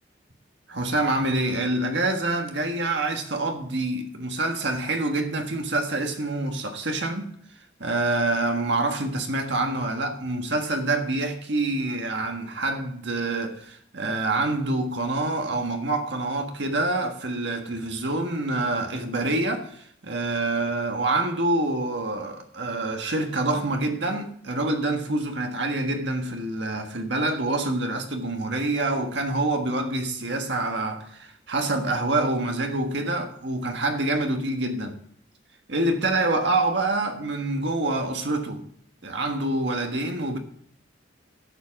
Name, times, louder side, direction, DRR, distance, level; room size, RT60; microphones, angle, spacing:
voice 1, 0.7-7.3 7.8-35.0 35.7-38.6 39.0-40.4, right 2 dB, 70° right, 1.5 m, -26 dB
12.0 x 7.5 x 5.9 m
head